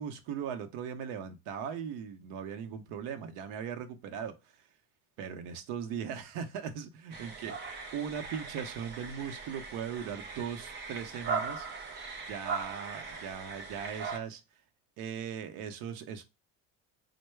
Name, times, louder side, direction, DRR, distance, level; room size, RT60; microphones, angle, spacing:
voice 1, 0.0-4.4 5.2-7.6 7.9-11.7 12.3-14.4 15.0-16.2, right 7 dB, 80° right, 0.7 m, -39 dB
sound 1, 7.1-14.2, right 5 dB, 30° right, 0.5 m, -39 dB
4.5 x 2.1 x 3.2 m
cardioid pair, 175°, 39 cm